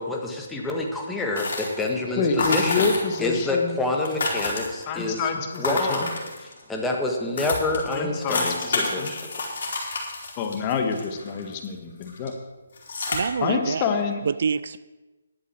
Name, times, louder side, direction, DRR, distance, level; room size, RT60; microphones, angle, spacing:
voice 1, 0.0-2.9 3.2-5.3 5.6-6.2 6.7-9.3, left 2 dB, 5° left, 0 dB, 1.6 m, -27 dB
sound 1, 1.4-2.0 2.4-3.3 3.6-3.7 3.9-5.0 5.5-6.6 7.1-7.2 7.4-11.7 12.0-12.3 12.8-13.2, left 3 dB, 60° left, 4.0 m, -29 dB
voice 2, 2.2-3.7 4.9-6.1 7.9-9.1 10.4-12.3 13.4-14.2, left 5 dB, 25° left, 5 dB, 1.4 m, -27 dB
voice 3, 13.1-13.9 14.3-14.8, right 6 dB, 55° right, 16 dB, 0.4 m, -26 dB
11.0 x 8.1 x 7.4 m, 1.2 s
hypercardioid pair, 155°, 0 cm